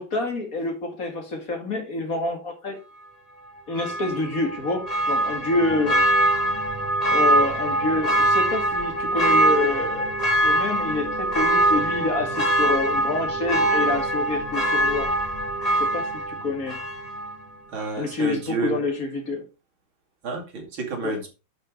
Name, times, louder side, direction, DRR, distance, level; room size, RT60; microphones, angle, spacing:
voice 1, 0.0-2.8 3.7-6.0 7.1-10.2 10.4-15.1 15.8-16.8 18.0-19.4 21.0-21.2, left 2 dB, 45° left, 3 dB, 2.6 m, -27 dB
Church bell, 3.7-17.4 17.8-17.9, right 1 dB, 20° left, 2.2 m, -23 dB
voice 2, 17.7-18.8 20.2-21.3, right 4 dB, 80° right, 1 dB, 3.3 m, -30 dB
10.5 x 5.2 x 4.6 m, 0.30 s
omnidirectional pair, 2.2 m